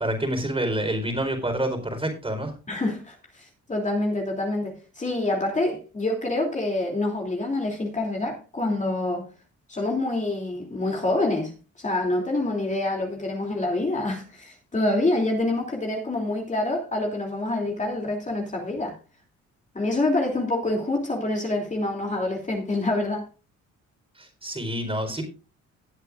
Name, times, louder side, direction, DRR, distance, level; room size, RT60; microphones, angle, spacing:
voice 1, 0.0-2.5 24.2-25.2, right 1 dB, 20° right, 4.3 m, -27 dB
voice 2, 2.7-9.3 9.7-11.5 11.8-18.9 19.7-23.3, left 2 dB, 25° left, 2.9 m, -26 dB
18.0 x 8.2 x 2.5 m
cardioid pair, 90°, 30 cm